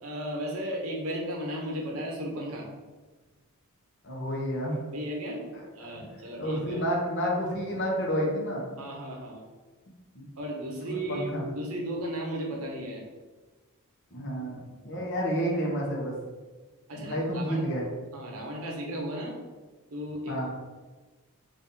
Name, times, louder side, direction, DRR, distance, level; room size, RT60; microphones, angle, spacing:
voice 1, 0.0-2.7 4.9-5.5 5.7-6.8 8.8-9.5 10.4-11.3 11.5-13.0 14.9-15.1 16.9-17.6 18.1-19.4 19.9-20.5, equal, 70° right, 0 dB, 0.7 m, -35 dB
voice 2, 4.0-4.8 5.8-5.9 6.4-8.7 10.1-10.2 10.8-11.4 14.1-16.1 17.0-17.9 20.3-20.5, equal, 55° left, -2 dB, 0.8 m, -30 dB
2.7 x 2.6 x 3.6 m, 1.3 s
head